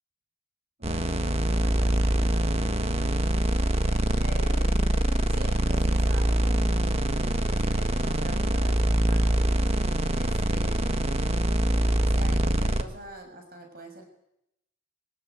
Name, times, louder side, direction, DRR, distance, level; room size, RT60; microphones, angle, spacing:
sound 1, 0.8-12.8, right 1 dB, 30° right, 1.5 m, -24 dB
voice 1, 0.8-3.2 4.2-4.9 5.3-9.5 10.1-11.0 11.9-14.0, right 1 dB, 45° right, 4 dB, 6.2 m, -45 dB
23.0 x 19.5 x 9.4 m, 0.80 s
head